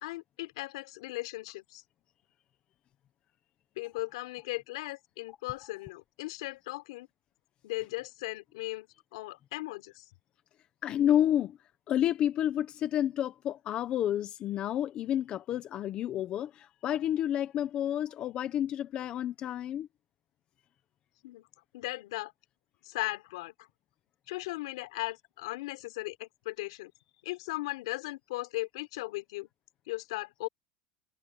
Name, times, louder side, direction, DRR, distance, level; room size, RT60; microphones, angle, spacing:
voice 1, 0.0-1.8 3.8-7.1 7.6-8.9 9.1-10.1 21.2-21.5 21.7-22.3 22.8-23.7 24.3-26.9 27.2-29.5 29.9-30.5, left 20 dB, 90° left, 4.0 m, -37 dB
voice 2, 10.8-11.6 11.9-19.9, left 11 dB, 35° left, 1.1 m, -30 dB
supercardioid pair, 155°, 3 cm